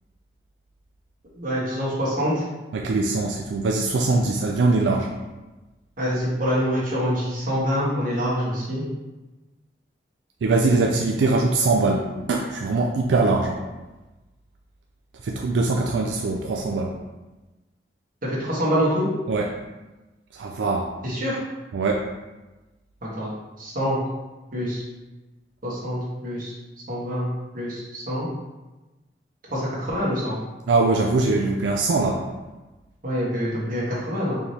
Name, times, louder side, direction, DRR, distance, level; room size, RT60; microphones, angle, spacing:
voice 1, 1.3-2.4 6.0-8.8 18.2-19.1 21.0-21.4 23.0-23.3 23.6-24.0 24.5-24.8 25.6-26.5 26.9-27.3 27.5-28.3 29.5-30.4 33.0-34.4, equal, 50° right, -6 dB, 1.3 m, -25 dB
voice 2, 2.7-5.1 10.4-13.6 15.2-16.9 19.3-19.5 20.3-20.9 21.7-22.0 30.7-32.2, right 3 dB, 85° right, 1 dB, 0.4 m, -22 dB
4.6 x 3.3 x 2.8 m, 1.1 s
head